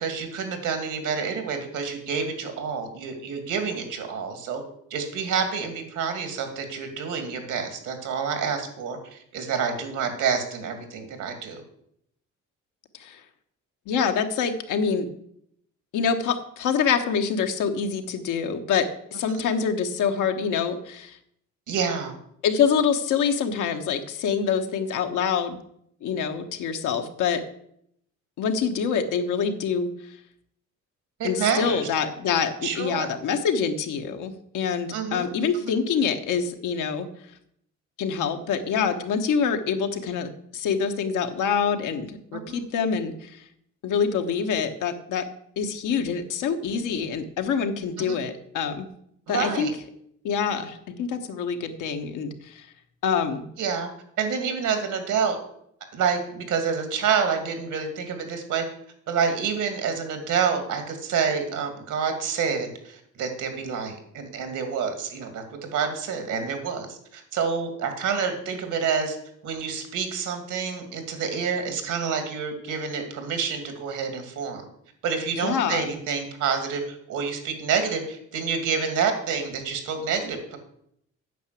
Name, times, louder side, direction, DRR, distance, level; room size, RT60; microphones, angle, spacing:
voice 1, 0.0-4.6 4.9-11.6 19.3-19.5 21.7-22.1 31.2-31.8 32.6-33.1 34.9-35.3 35.6-35.7 42.3-42.6 48.0-48.2 49.3-49.7 53.6-53.9 54.2-55.4 55.9-58.6 59.1-69.2 69.4-74.6 75.0-80.6, right 6 dB, 80° right, 6 dB, 2.5 m, -28 dB
voice 2, 13.9-15.1 15.9-21.2 22.4-25.6 26.0-27.4 28.4-29.9 31.2-37.1 38.0-43.4 43.8-45.2 45.6-48.9 49.3-49.7 50.2-52.6 53.0-53.5 75.4-75.9, left 6 dB, 85° left, 6 dB, 1.3 m, -26 dB
9.2 x 5.9 x 8.3 m, 0.71 s
cardioid pair, 90°, 30 cm